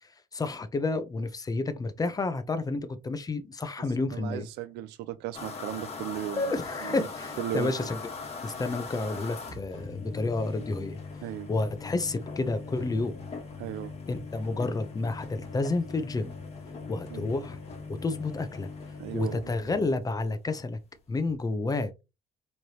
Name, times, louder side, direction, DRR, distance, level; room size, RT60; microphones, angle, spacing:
voice 1, 0.3-4.5 6.4-8.0 8.4-11.0 11.5-13.2 14.1-16.3 16.9-17.6 17.9-18.7 19.1-20.8 21.1-21.9, left 3 dB, 20° left, 0.7 m, -30 dB
voice 2, 4.1-6.5 6.8-7.1 7.4-7.7 11.2-11.5 13.6-13.9 17.1-17.3 19.0-19.5, right 12 dB, 80° right, 0.4 m, -36 dB
sound 1, 5.3-20.2, left 4 dB, 40° left, 1.5 m, -40 dB
4.6 x 3.2 x 2.9 m
cardioid pair, 110°, 17 cm